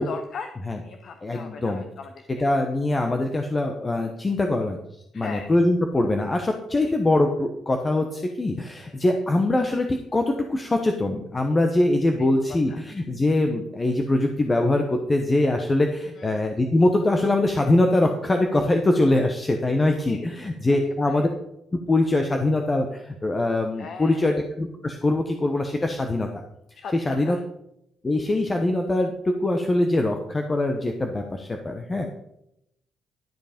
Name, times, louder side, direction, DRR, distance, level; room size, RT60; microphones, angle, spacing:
voice 1, 0.0-2.4 5.1-5.5 6.8-6.9 8.8-9.0 12.5-12.6 16.2-16.4 20.1-20.2 21.0-21.3 23.8-24.2 26.8-27.4, left 5 dB, 60° left, 6 dB, 0.8 m, -39 dB
voice 2, 1.2-1.8 2.3-4.8 5.1-21.3 21.9-26.3 26.9-27.4 28.0-32.1, left 2 dB, 25° left, 4 dB, 1.0 m, -23 dB
12.0 x 5.3 x 5.1 m, 0.82 s
cardioid pair, 90°, 0 cm